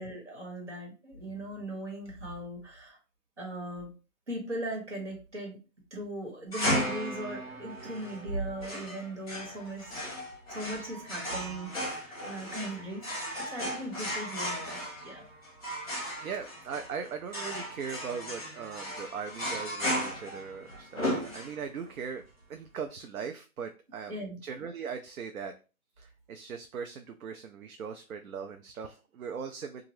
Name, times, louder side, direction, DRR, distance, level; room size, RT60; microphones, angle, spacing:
voice 1, 0.0-3.0 3.4-3.9 4.3-5.6 5.9-10.0 10.5-13.1 13.5-15.3 16.1-16.2 24.1-24.4, right 1 dB, 50° right, -1 dB, 1.5 m, -38 dB
sound 1, 6.5-21.9, equal, 25° left, 1.1 m, -35 dB
voice 2, 16.2-22.2 22.5-25.5 26.0-29.8, right 6 dB, 70° right, 6 dB, 0.5 m, -39 dB
2.8 x 2.4 x 3.0 m, 0.32 s
hypercardioid pair, 180°, 44 cm